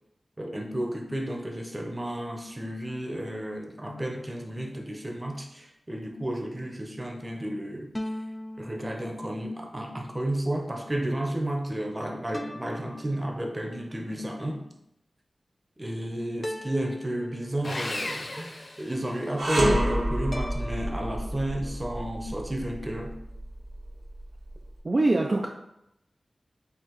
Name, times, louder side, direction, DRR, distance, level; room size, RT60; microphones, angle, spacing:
voice 1, 0.4-7.9 8.6-14.7 15.8-23.1, right 1 dB, 25° right, 3 dB, 0.7 m, -32 dB
sound 1, 3.9-5.5 7.9-9.6 12.3-13.8 16.4-18.0 20.3-21.2, left 1 dB, 20° left, 0.4 m, -41 dB
Sawing, 17.6-19.5, left 2 dB, 60° left, 0.6 m, -36 dB
sound 2, 19.4-24.6, right 1 dB, 70° right, 0.9 m, -29 dB
voice 2, 24.8-25.5, right 2 dB, 50° right, 0 dB, 0.4 m, -23 dB
4.6 x 2.9 x 3.0 m, 0.83 s
cardioid pair, 45°, 0 cm